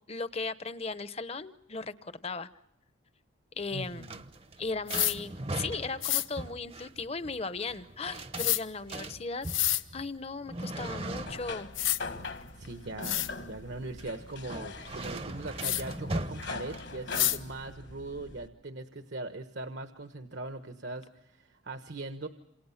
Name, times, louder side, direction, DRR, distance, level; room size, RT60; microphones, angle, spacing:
voice 1, 0.1-2.5 3.6-4.1 4.6-9.5 9.9-11.7, left 4 dB, 30° left, 13 dB, 0.9 m, -37 dB
sound 1, 3.6-17.3, right 2 dB, 30° right, 0.8 m, -40 dB
voice 2, 3.7-4.2 12.3-22.3, right 2 dB, 65° right, 7 dB, 1.2 m, -40 dB
sound 2, 4.9-5.2 6.0-6.3 8.4-8.6 9.4-9.8 11.3-11.4 11.7-12.0 12.6-12.7 13.0-13.3 15.6-15.8 17.1-17.4, left 14 dB, 80° left, 1.2 m, -28 dB
sound 3, 10.7-18.5, left 3 dB, 60° left, 1.5 m, -43 dB
28.0 x 27.5 x 5.8 m, 0.82 s
head